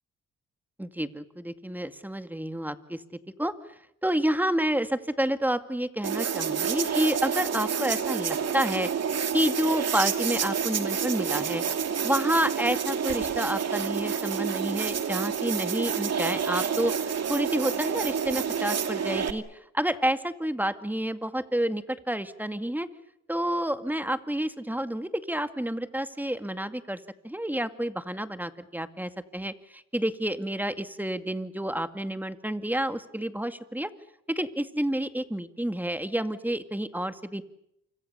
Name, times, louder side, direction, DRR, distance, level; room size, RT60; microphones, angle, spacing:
voice 1, 0.8-3.0 3.4-3.5 4.0-8.9 9.3-11.6 12.0-19.4 19.7-22.9 23.3-27.0 27.2-33.9 34.3-37.4, right 1 dB, 5° right, 10 dB, 2.2 m, -29 dB
sound 1, 6.0-19.3, right 7 dB, 60° right, 2.5 m, -29 dB
28.5 x 26.0 x 7.0 m, 0.80 s
cardioid pair, 70°, 29 cm